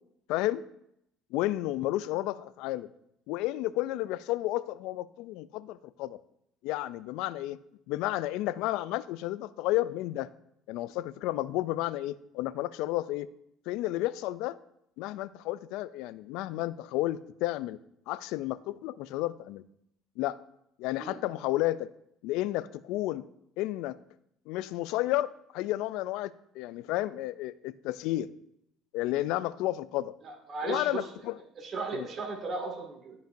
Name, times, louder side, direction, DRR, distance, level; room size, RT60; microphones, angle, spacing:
voice 1, 0.3-0.6 1.3-2.9 3.3-6.2 6.6-7.6 7.9-10.3 10.7-13.3 13.7-14.6 15.0-17.8 18.1-19.6 20.2-20.4 20.8-21.9 22.2-23.2 23.6-24.0 24.5-26.3 26.6-28.3 28.9-30.1 30.6-31.4 31.9-32.1, left 16 dB, 75° left, 17 dB, 0.3 m, -32 dB
voice 2, 30.2-31.0 31.6-33.2, right 4 dB, 45° right, 0 dB, 2.1 m, -36 dB
12.5 x 5.1 x 2.6 m, 0.77 s
supercardioid pair, 95°, 0 cm